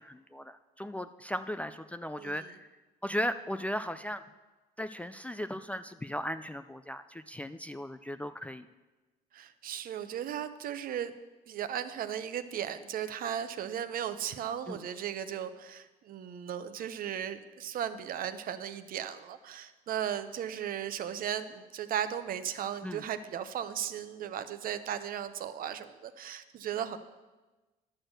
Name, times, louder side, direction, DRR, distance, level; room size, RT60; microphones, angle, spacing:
voice 1, 0.0-2.7 3.0-4.2 4.8-8.7 14.7-14.8 22.8-23.0, equal, 10° left, 9 dB, 0.3 m, -37 dB
voice 2, 9.3-11.1 11.5-27.0, right 9 dB, 60° right, 11 dB, 0.7 m, -36 dB
11.0 x 6.2 x 6.5 m, 1.2 s
cardioid pair, 110°, 17 cm